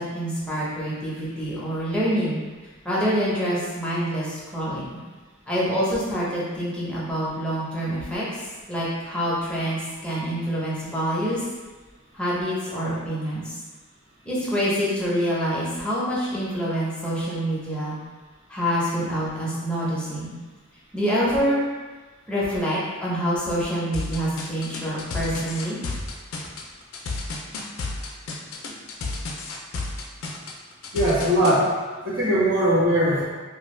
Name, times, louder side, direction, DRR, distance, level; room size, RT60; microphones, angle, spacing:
voice 1, 0.0-2.4 2.8-5.0 5.5-11.4 12.1-13.6 14.2-18.0 18.5-20.3 20.9-21.6 22.3-25.8, equal, 5° left, -8 dB, 0.7 m, -26 dB
sound 1, 23.9-31.6, left 3 dB, 75° left, 0.4 m, -31 dB
voice 2, 30.9-31.7 32.0-33.2, equal, 70° right, -12 dB, 1.5 m, -20 dB
2.7 x 2.3 x 3.1 m, 1.3 s
head